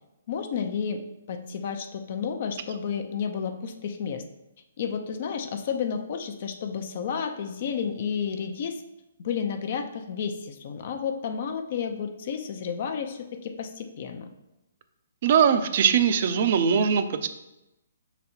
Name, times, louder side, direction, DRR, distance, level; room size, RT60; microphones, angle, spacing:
voice 1, 0.3-1.0 1.3-4.2 4.8-8.8 9.2-14.3, left 7 dB, 50° left, 6 dB, 0.5 m, -31 dB
voice 2, 15.2-17.3, right 7 dB, 45° right, 10 dB, 0.5 m, -21 dB
5.4 x 4.0 x 4.4 m, 0.92 s
hypercardioid pair, 155°, 0 cm